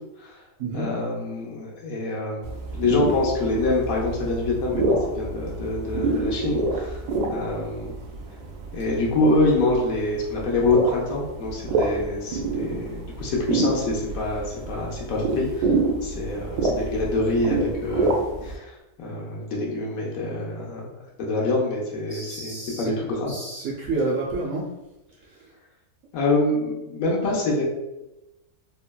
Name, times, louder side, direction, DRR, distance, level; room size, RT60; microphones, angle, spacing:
voice 1, 0.7-2.4 2.7-7.0 7.3-8.0 8.7-15.7 16.0-23.3 26.1-27.6, left 2 dB, 65° left, -3 dB, 1.0 m, -26 dB
sound 1, 2.4-18.6, right 3 dB, 90° right, 1.2 m, -27 dB
voice 2, 22.1-22.8 23.3-24.6, right 3 dB, 65° right, -5 dB, 0.7 m, -29 dB
3.7 x 2.2 x 2.2 m, 0.98 s
omnidirectional pair, 1.7 m